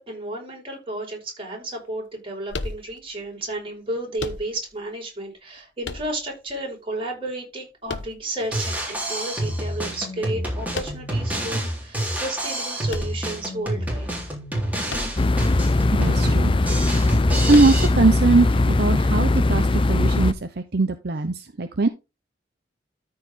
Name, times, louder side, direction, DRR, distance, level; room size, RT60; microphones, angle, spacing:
voice 1, 0.0-14.2, right 1 dB, 30° right, 0 dB, 5.2 m, -32 dB
sound 1, 2.5-3.3 4.2-4.9 5.8-6.5 7.9-8.7 10.7-11.3 12.9-13.8 14.9-15.4 15.7-15.8 17.5-18.1, left 3 dB, 85° left, 1.0 m, -34 dB
Drum kit, 8.4-17.9, right 1 dB, 10° right, 3.5 m, -28 dB
sound 2, 15.2-20.3, left 2 dB, 30° left, 0.5 m, -20 dB
voice 2, 15.9-17.0 17.5-21.9, right 3 dB, 60° right, 8 dB, 0.8 m, -21 dB
13.5 x 4.8 x 3.7 m, 0.26 s
head